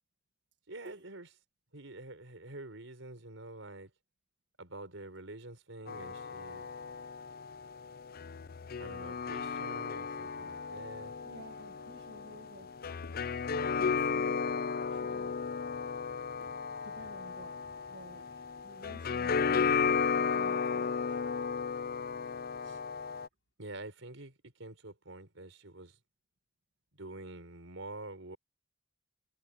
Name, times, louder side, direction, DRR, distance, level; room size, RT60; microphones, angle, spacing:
voice 1, 0.7-1.3 1.7-3.9 4.6-6.7 8.8-11.1 22.6-22.8 23.6-26.0 26.9-28.4, right 2 dB, 85° right, 4.3 m, -47 dB
sound 1, 5.9-23.3, left 6 dB, 50° left, 0.5 m, -34 dB
voice 2, 11.3-12.8 13.3-15.4 16.8-21.2, right 1 dB, 60° right, 1.9 m, -54 dB
sound 2, 15.1-20.7 21.4-21.5 22.0-22.6 22.9-23.5, left 1 dB, 85° left, 6.4 m, -65 dB
head